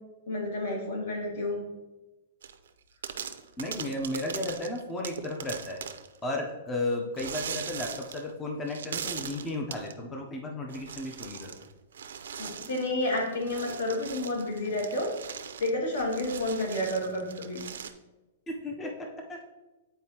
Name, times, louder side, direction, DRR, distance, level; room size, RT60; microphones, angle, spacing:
voice 1, 0.3-1.6 12.4-15.1 15.6-17.6, left 1 dB, 60° left, 0 dB, 1.9 m, -30 dB
sound 1, 2.4-2.7 3.0-6.2 7.2-8.3 8.7-9.9 10.7-11.7 11.9-17.9, right 7 dB, 85° right, 0.5 m, -40 dB
voice 2, 3.6-5.8 6.2-11.5 18.5-19.4, left 2 dB, 10° left, 1 dB, 0.5 m, -34 dB
9.2 x 4.3 x 2.8 m, 1.1 s
hypercardioid pair, 175°, 0 cm